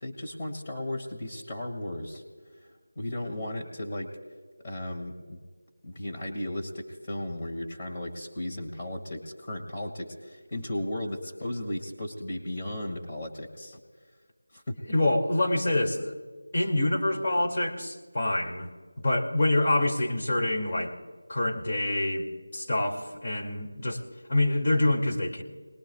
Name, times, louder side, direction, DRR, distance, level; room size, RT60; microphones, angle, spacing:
voice 1, 0.0-2.2 2.6-4.1 4.6-5.4 5.8-13.8 14.5-14.8, left 1 dB, 25° left, -1 dB, 2.1 m, -35 dB
voice 2, 14.9-16.1 16.5-18.7 19.0-20.9 21.3-24.0 24.3-25.4, left 1 dB, 40° left, 0 dB, 2.5 m, -26 dB
27.5 x 20.5 x 2.4 m, 1.5 s
figure-of-eight pair, 170°, 0 cm